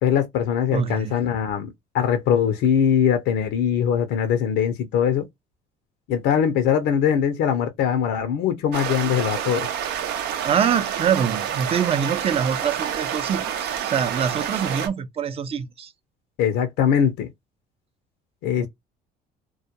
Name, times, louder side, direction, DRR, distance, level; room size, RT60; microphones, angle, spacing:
voice 1, 0.0-5.3 6.1-9.7 16.4-17.3 18.4-18.7, left 8 dB, 90° left, 0.6 m, -21 dB
voice 2, 0.7-1.2 10.4-15.9 18.6-18.7, right 8 dB, 35° right, 0.5 m, -24 dB
sound 1, 8.7-14.9, right 9 dB, 85° right, 0.6 m, -28 dB
2.3 x 2.2 x 2.7 m
cardioid pair, 110°, 17 cm